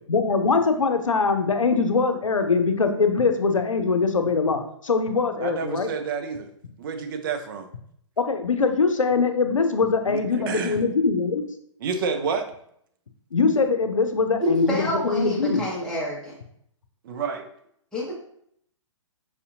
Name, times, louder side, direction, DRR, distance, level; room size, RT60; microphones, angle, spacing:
voice 1, 0.1-5.9 8.2-11.4 13.3-15.6, left 4 dB, 85° left, 6 dB, 0.6 m, -22 dB
voice 2, 5.4-6.5 6.8-7.7 10.1-10.8 11.8-12.5 17.0-17.5, right 5 dB, 45° right, 7 dB, 0.5 m, -29 dB
voice 3, 14.4-16.4 17.9-18.1, equal, 5° left, -6 dB, 1.1 m, -28 dB
4.9 x 2.7 x 2.5 m, 0.69 s
figure-of-eight pair, 125°, 16 cm